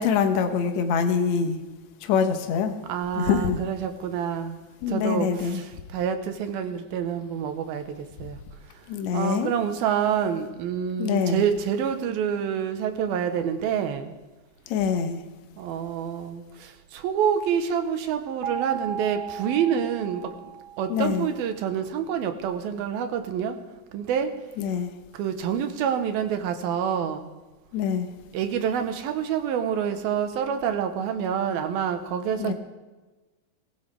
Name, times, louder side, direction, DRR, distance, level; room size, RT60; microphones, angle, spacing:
voice 1, 0.0-1.6 2.0-2.7 3.1-3.6 4.8-5.6 8.9-9.5 11.0-11.4 14.7-15.2 20.9-21.3 24.6-24.9 27.7-28.1 32.4-32.5, left 6 dB, 85° left, 1.5 m, -24 dB
voice 2, 2.9-4.6 4.9-7.8 8.2-8.4 9.1-14.1 15.6-20.3 20.8-23.6 23.9-24.3 25.1-27.2 28.3-32.5, right 8 dB, 70° right, 2.7 m, -27 dB
sound 1, 18.4-21.4, right 9 dB, 90° right, 3.6 m, -36 dB
23.5 x 15.5 x 3.4 m
omnidirectional pair, 4.8 m